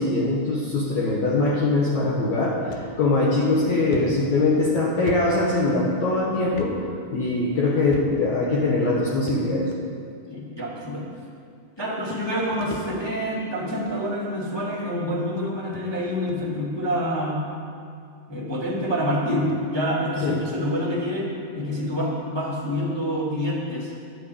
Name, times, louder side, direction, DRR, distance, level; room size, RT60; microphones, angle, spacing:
voice 1, 0.0-6.8 7.1-9.7 20.2-20.4, left 2 dB, 65° left, -5 dB, 1.8 m, -22 dB
sound 1, 2.7-2.9 3.3-3.4 3.9-6.0 6.5-6.7 7.0-7.1 7.9-8.4 9.3-9.8 10.7-10.8 11.8-11.9 12.1-13.3 13.7-14.0 14.8-14.9 15.4-15.5 15.7-15.9 16.3-16.5, left 4 dB, 85° left, 2.7 m, -39 dB
voice 2, 10.3-11.1 11.8-17.5 18.3-23.9, equal, 20° left, -5 dB, 0.7 m, -27 dB
11.0 x 6.8 x 8.6 m, 2.3 s
omnidirectional pair, 4.7 m